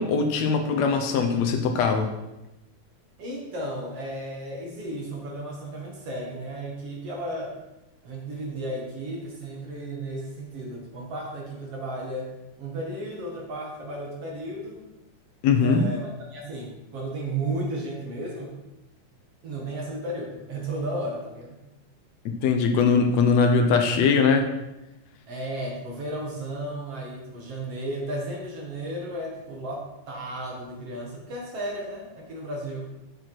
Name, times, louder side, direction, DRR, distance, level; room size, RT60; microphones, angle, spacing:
voice 1, 0.0-2.1 15.4-15.8 22.2-24.5, left 5 dB, 75° left, 5 dB, 1.6 m, -21 dB
voice 2, 3.2-7.6 8.0-14.8 15.6-18.6 19.4-21.6 25.3-32.9, right 1 dB, 50° right, -2 dB, 2.3 m, -34 dB
11.5 x 6.3 x 4.5 m, 0.95 s
omnidirectional pair, 4.1 m